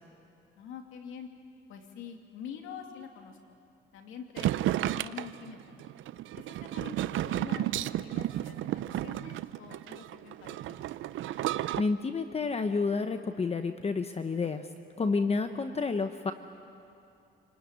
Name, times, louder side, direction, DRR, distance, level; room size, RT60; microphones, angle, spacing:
voice 1, 0.6-1.3 1.7-3.4 3.9-5.7 6.4-10.9, left 7 dB, 90° left, 3 dB, 2.7 m, -46 dB
sound 1, 4.4-11.8, right 13 dB, 80° right, 0.6 m, -32 dB
voice 2, 11.4-14.7 15.0-16.3, left 4 dB, 30° left, 8 dB, 1.0 m, -30 dB
27.5 x 19.0 x 9.9 m, 2.6 s
cardioid pair, 90°, 20 cm